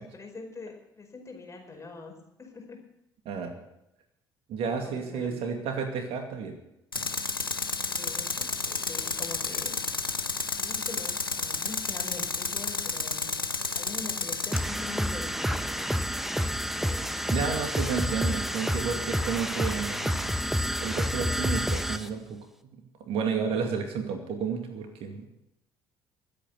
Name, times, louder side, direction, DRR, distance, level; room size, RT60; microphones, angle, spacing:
voice 1, 0.1-2.8 4.6-5.3 7.9-9.8 10.6-13.3 13.7-15.9 16.8-17.2, left 3 dB, 25° left, 2 dB, 4.9 m, -43 dB
voice 2, 4.5-6.6 7.0-7.1 17.3-20.5 20.8-22.4 22.6-22.8 23.1-25.3, right 6 dB, 55° right, 5 dB, 2.3 m, -31 dB
Tools, 6.9-14.6, left 4 dB, 90° left, 0.7 m, -31 dB
sound 1, 14.5-22.1, equal, ahead, 1.2 m, -29 dB
22.5 x 8.6 x 6.9 m, 0.87 s
figure-of-eight pair, 50°, 11 cm